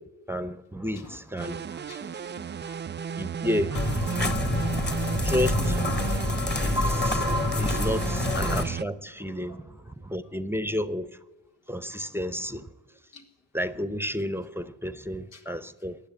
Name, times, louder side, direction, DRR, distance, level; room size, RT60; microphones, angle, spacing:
voice 1, 0.3-1.6 3.2-4.1 5.2-5.8 6.6-7.2 7.6-11.2 11.7-12.7 13.5-16.0, left 1 dB, 5° right, 0.8 m, -31 dB
voice 2, 1.4-3.0 3.7-4.7 8.2-8.3 9.4-9.6 13.1-13.3 15.3-15.4, left 3 dB, 80° left, 2.0 m, -51 dB
sound 1, 1.4-8.8, right 7 dB, 25° right, 0.4 m, -33 dB
sound 2, 3.7-8.6, left 2 dB, 20° left, 1.3 m, -26 dB
15.0 x 9.4 x 8.9 m
supercardioid pair, 50°, 48 cm